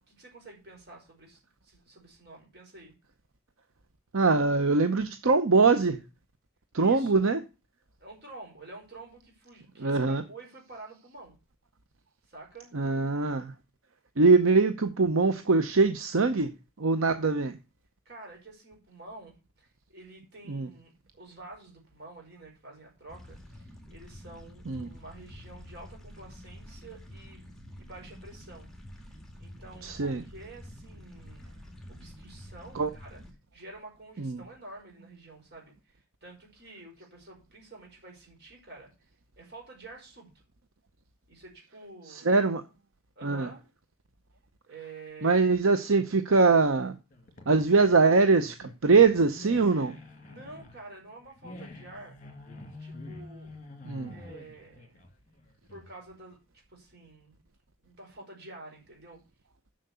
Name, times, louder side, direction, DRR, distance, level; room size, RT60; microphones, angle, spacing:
voice 1, 0.1-2.9 6.7-7.1 8.0-11.4 12.3-12.7 18.0-31.5 31.9-33.2 33.5-38.9 39.4-40.3 41.3-42.3 43.1-43.6 44.7-45.5 50.3-52.2 52.8-53.5 54.1-55.0 55.7-57.4 57.8-59.2, right 2 dB, 50° right, 4.9 m, -49 dB
voice 2, 4.1-6.0 6.7-7.4 9.8-10.2 12.7-13.5 14.2-16.5 16.8-17.5 20.5-20.7 24.7-24.9 29.8-30.2 32.7-32.9 34.2-34.4 42.1-42.6 43.2-43.5 45.2-46.9 47.5-49.9 53.8-54.1, right 4 dB, 75° right, 0.8 m, -23 dB
sound 1, 23.1-33.3, left 1 dB, ahead, 1.9 m, -48 dB
sound 2, 47.1-56.1, left 2 dB, 35° left, 2.1 m, -47 dB
7.5 x 6.6 x 6.8 m
head